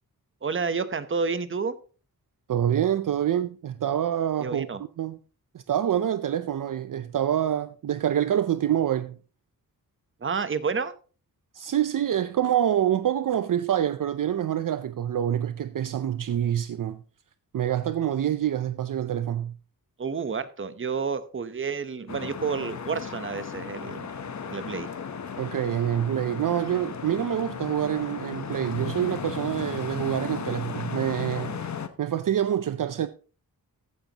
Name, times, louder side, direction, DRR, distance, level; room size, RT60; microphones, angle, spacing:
voice 1, 0.4-1.8 4.4-4.8 10.2-10.9 20.0-24.1 24.5-24.9, right 5 dB, 35° right, 0.8 m, -30 dB
voice 2, 2.5-4.7 5.0-5.2 5.5-9.2 11.5-17.0 17.5-19.5 25.4-33.1, right 10 dB, 60° right, 0.5 m, -26 dB
sound 1, 22.1-31.9, left 6 dB, 50° left, 0.9 m, -35 dB
14.5 x 9.2 x 2.9 m
wide cardioid pair, 145°, 37 cm